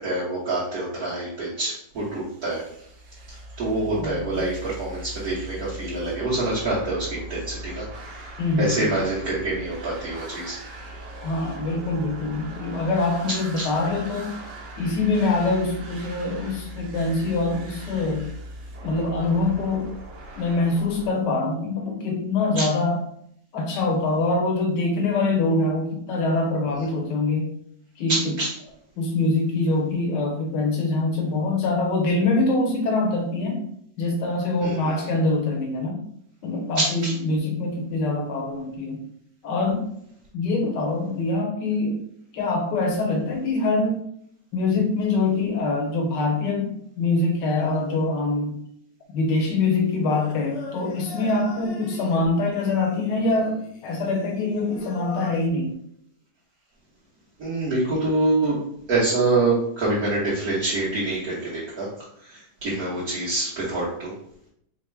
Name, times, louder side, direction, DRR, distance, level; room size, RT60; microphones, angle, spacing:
voice 1, 0.0-2.6 3.3-10.6 13.6-13.7 22.5-22.6 26.7-26.8 28.1-28.5 34.6-35.1 36.7-37.1 57.4-58.6 58.9-61.9 62.2-64.1, right 2 dB, 60° right, -8 dB, 1.5 m, -26 dB
sound 1, 1.9-21.1, right 1 dB, 80° right, 1.3 m, -40 dB
voice 2, 8.4-8.9 11.2-14.3 14.8-18.4 18.8-19.9 20.4-23.0 23.5-27.5 28.0-28.3 29.0-33.7 34.0-36.0 36.4-39.0 39.4-39.9 40.3-42.0 42.3-44.0 44.5-48.6 49.1-55.7, left 3 dB, 80° left, 1 dB, 1.4 m, -24 dB
Singing, 50.1-55.5, left 4 dB, 60° left, 1.0 m, -39 dB
4.4 x 2.1 x 4.4 m, 0.70 s
omnidirectional pair, 1.8 m